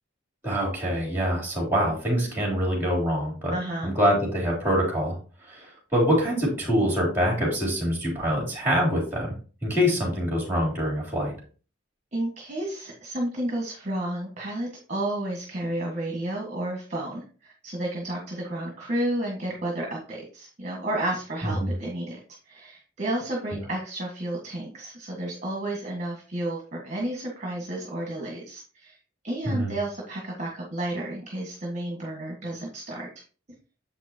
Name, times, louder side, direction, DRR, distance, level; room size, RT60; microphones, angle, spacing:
voice 1, 0.4-3.5 3.8-5.2 5.5-9.3 9.6-11.3 21.4-21.7 29.5-29.7, equal, 10° right, -1 dB, 3.7 m, -25 dB
voice 2, 3.5-3.9 12.1-22.2 22.5-29.0 29.2-33.1, right 1 dB, 40° right, -2 dB, 1.7 m, -31 dB
7.7 x 5.9 x 2.9 m, 0.38 s
head